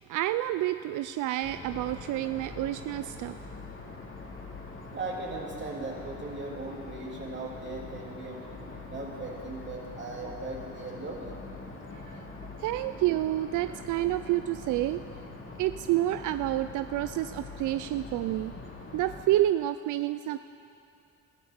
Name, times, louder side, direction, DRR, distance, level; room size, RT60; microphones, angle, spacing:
voice 1, 0.1-3.4 12.6-15.0 15.6-18.5 18.9-20.4, right 14 dB, 80° right, 11 dB, 0.5 m, -29 dB
sound 1, 1.4-19.2, left 3 dB, 45° left, 2.8 m, -43 dB
voice 2, 4.2-11.4 11.9-12.3 13.6-13.8, right 2 dB, 40° right, -2 dB, 3.3 m, -39 dB
19.5 x 13.5 x 5.2 m, 2.6 s
cardioid pair, 90°, 30 cm